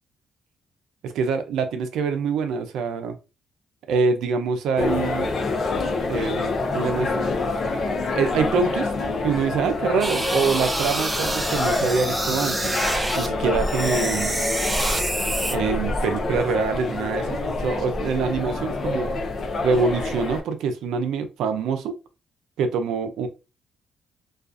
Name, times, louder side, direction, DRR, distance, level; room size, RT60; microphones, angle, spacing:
voice 1, 1.0-3.2 3.9-5.3 6.1-7.2 8.1-8.9 9.2-12.7 13.2-14.4 15.5-19.1 19.6-21.9 22.6-23.3, right 5 dB, 85° right, 0.5 m, -25 dB
sound 1, 4.8-20.4, left 3 dB, 50° left, 0.5 m, -27 dB
sound 2, 10.0-13.3 13.6-15.6, right 1 dB, 10° right, 0.4 m, -27 dB
2.4 x 2.3 x 2.4 m
cardioid pair, 90°, 0 cm